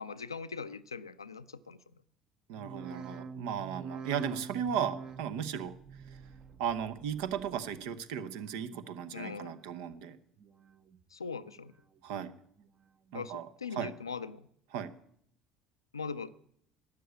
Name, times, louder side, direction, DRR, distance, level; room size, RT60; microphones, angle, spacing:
voice 1, 0.0-1.8 9.1-9.5 11.1-11.7 13.1-14.5 15.9-16.3, left 5 dB, 85° left, 14 dB, 0.4 m, -40 dB
sound 1, 2.5-7.9 8.2-8.8 9.3-9.9 10.4-11.0 11.4-12.1 12.6-13.1 13.7-13.8, right 5 dB, 35° right, 0.9 m, -48 dB
voice 2, 2.5-5.7 6.1-6.2 6.6-10.2 12.0-12.3 13.1-13.9 14.7-14.9, right 8 dB, 65° right, 12 dB, 0.9 m, -36 dB
12.5 x 8.3 x 8.2 m, 0.68 s
figure-of-eight pair, 60°, 2 cm